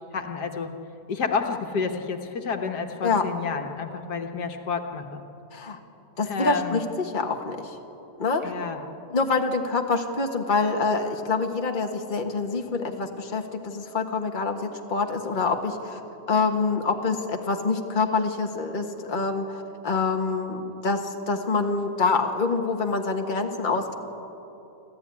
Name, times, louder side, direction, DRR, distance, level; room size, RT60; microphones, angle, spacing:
voice 1, 0.1-0.7 1.1-5.2 6.2-6.8 8.4-8.8, left 5 dB, 80° left, 5 dB, 1.9 m, -30 dB
voice 2, 6.2-7.7 8.2-8.4 9.1-16.0 16.3-24.0, left 4 dB, 30° left, 3 dB, 1.6 m, -26 dB
29.0 x 13.0 x 9.6 m, 2.9 s
omnidirectional pair, 1.7 m